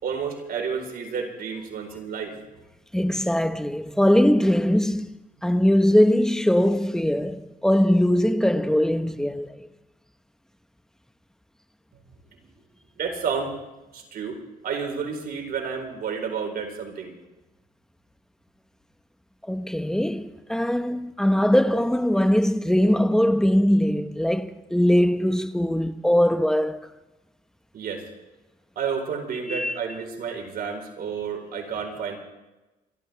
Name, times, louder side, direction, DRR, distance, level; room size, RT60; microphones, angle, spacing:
voice 1, 0.0-2.4 13.0-13.5 13.9-14.4 14.6-17.1 27.7-28.0 28.8-32.2, right 6 dB, 70° right, 4.3 m, -30 dB
voice 2, 2.9-5.1 5.4-9.7 19.5-26.9 29.5-29.7, equal, 5° left, 1.1 m, -21 dB
27.5 x 13.0 x 3.5 m
cardioid pair, 90°, 16 cm